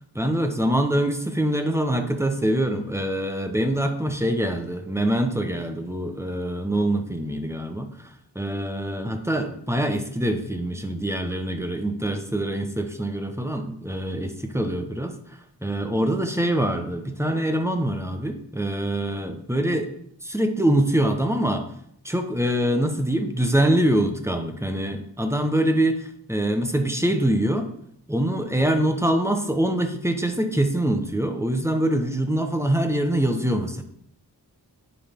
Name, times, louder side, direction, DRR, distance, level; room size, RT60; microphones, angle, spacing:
voice 1, 0.1-7.9 8.3-15.1 15.6-19.9 20.2-21.7 22.0-27.7 28.1-33.8, right 1 dB, 5° right, 6 dB, 1.1 m, -24 dB
10.0 x 4.7 x 3.8 m, 0.68 s
cardioid pair, 45°, 41 cm